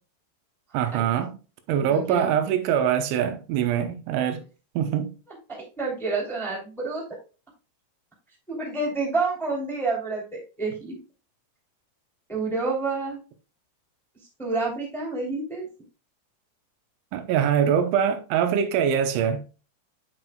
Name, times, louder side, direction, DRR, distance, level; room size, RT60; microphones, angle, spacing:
voice 1, 0.7-1.3 1.7-4.4 4.8-5.1 17.1-19.4, right 8 dB, 85° right, 3.3 m, -23 dB
voice 2, 1.9-2.3 5.8-7.0 8.5-11.0 12.3-13.2 14.4-15.7, right 3 dB, ahead, 1.7 m, -28 dB
9.3 x 6.0 x 2.2 m
omnidirectional pair, 5.3 m